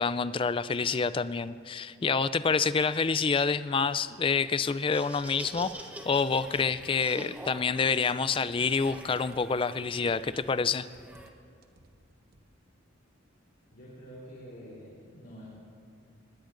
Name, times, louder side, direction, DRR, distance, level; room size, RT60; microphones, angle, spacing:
voice 1, 0.0-5.7 6.1-10.9, left 5 dB, 25° left, 15 dB, 0.3 m, -27 dB
Laughter, 4.7-11.3, right 1 dB, 10° right, 0.9 m, -45 dB
sound 1, 5.3-5.9 6.3-7.0 7.4-7.8 8.3-9.6 9.9-10.6 10.9-11.4 11.6-12.5, right 1 dB, 50° right, 1.0 m, -57 dB
voice 2, 13.7-15.5, equal, 50° left, -8 dB, 3.8 m, -47 dB
24.0 x 20.5 x 2.6 m, 2.4 s
head